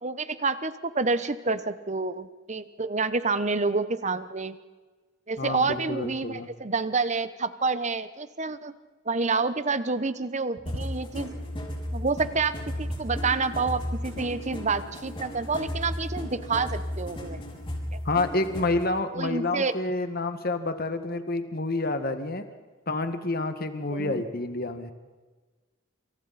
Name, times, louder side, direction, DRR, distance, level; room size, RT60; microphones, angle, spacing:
voice 1, 0.0-4.6 5.3-8.7 9.0-11.4 11.9-17.4 17.9-18.0 19.1-19.8 23.9-24.2, right 4 dB, 35° right, 13 dB, 1.1 m, -28 dB
voice 2, 5.4-6.5 18.0-22.4 22.9-24.9, left 2 dB, 45° left, 8 dB, 1.8 m, -28 dB
sound 1, 10.7-18.8, left 1 dB, 25° left, 5.4 m, -34 dB
28.0 x 28.0 x 4.3 m, 1.3 s
head